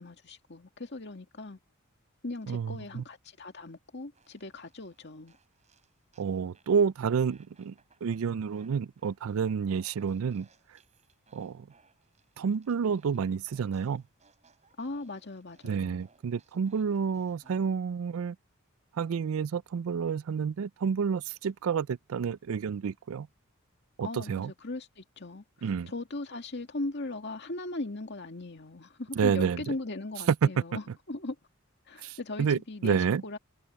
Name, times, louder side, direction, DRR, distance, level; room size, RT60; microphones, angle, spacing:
voice 1, 0.0-1.6 2.2-5.3 14.8-16.1 24.0-25.4 25.9-31.4 31.9-33.4, left 2 dB, 55° left, 2.2 m, -39 dB
voice 2, 2.5-3.0 6.2-7.7 8.0-10.5 11.3-11.7 12.4-14.0 15.6-18.4 18.9-23.3 24.0-24.5 25.6-25.9 29.2-29.6 30.3-30.4 32.0-33.2, right 6 dB, 80° right, 0.4 m, -29 dB
Fart, 4.1-6.8 7.3-17.6, right 4 dB, 35° right, 7.7 m, -66 dB
head